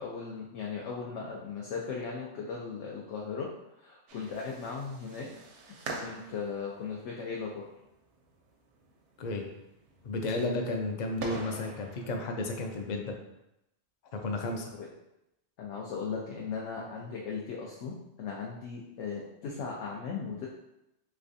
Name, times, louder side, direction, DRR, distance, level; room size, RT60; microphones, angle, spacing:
voice 1, 0.0-3.5 3.8-5.3 5.7-7.6 14.6-14.9 15.6-20.5, left 5 dB, 85° left, -3 dB, 0.9 m, -37 dB
sound 1, 4.1-12.3, right 3 dB, 80° right, 0.9 m, -45 dB
voice 2, 10.0-13.1 14.1-14.7, left 2 dB, 55° left, 3 dB, 0.5 m, -33 dB
3.3 x 3.2 x 2.6 m, 0.87 s
omnidirectional pair, 1.2 m